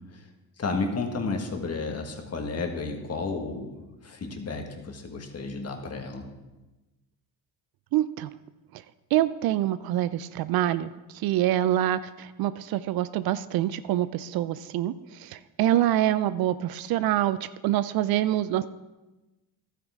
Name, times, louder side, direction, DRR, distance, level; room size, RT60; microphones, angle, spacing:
voice 1, 0.6-3.7 4.0-6.3, left 3 dB, 35° left, 4 dB, 1.7 m, -32 dB
voice 2, 7.9-8.3 8.7-8.8 9.1-18.7, right 13 dB, 60° right, 15 dB, 0.5 m, -26 dB
12.0 x 9.4 x 3.6 m, 1.1 s
supercardioid pair, 80°, 42 cm